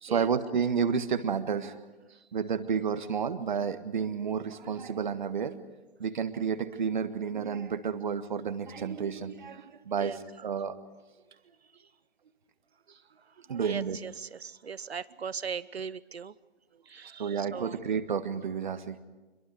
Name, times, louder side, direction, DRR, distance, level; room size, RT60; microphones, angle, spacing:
voice 1, 0.0-1.8 2.3-5.5 6.0-10.8 13.5-14.0 17.2-19.0, right 6 dB, 50° right, 10 dB, 1.6 m, -31 dB
voice 2, 13.6-16.3 16.9-17.8, right 6 dB, 75° right, 19 dB, 1.0 m, -39 dB
27.0 x 23.0 x 5.0 m, 1.2 s
figure-of-eight pair, 155°, 32 cm